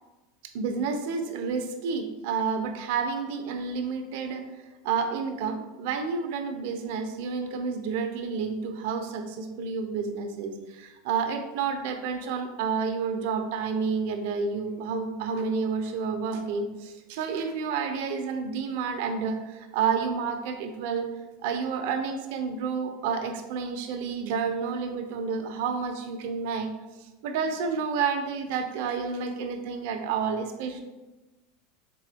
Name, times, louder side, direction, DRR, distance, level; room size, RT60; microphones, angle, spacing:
voice 1, 0.5-4.4 4.8-21.1 21.4-26.7 27.0-30.8, right 5 dB, 70° right, 5 dB, 0.6 m, -30 dB
3.7 x 3.7 x 3.4 m, 1.1 s
supercardioid pair, 110°, 0 cm